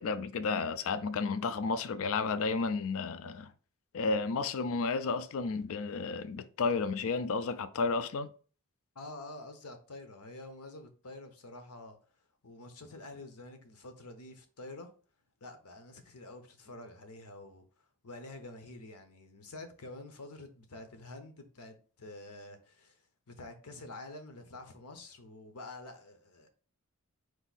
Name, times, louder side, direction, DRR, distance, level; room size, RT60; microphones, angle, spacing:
voice 1, 0.0-3.5 3.9-8.3, left 4 dB, 65° left, 0.4 m, -32 dB
voice 2, 8.9-12.0 12.4-14.9 15.4-17.6 18.0-23.0 23.3-26.5, left 2 dB, 85° left, 0.9 m, -48 dB
4.6 x 2.6 x 4.0 m
head